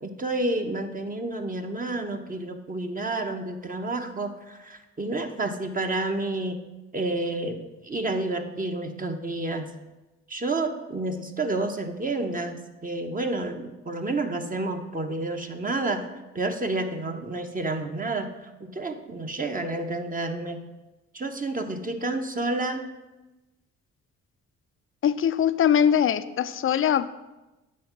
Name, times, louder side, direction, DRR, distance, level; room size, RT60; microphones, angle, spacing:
voice 1, 0.0-6.6 6.9-9.7 10.3-16.1 16.3-20.7 21.1-22.9, right 2 dB, 25° right, 5 dB, 0.9 m, -30 dB
voice 2, 25.0-27.1, left 9 dB, 40° left, 13 dB, 0.5 m, -22 dB
8.5 x 3.6 x 5.9 m, 1.1 s
supercardioid pair, 60°, 32 cm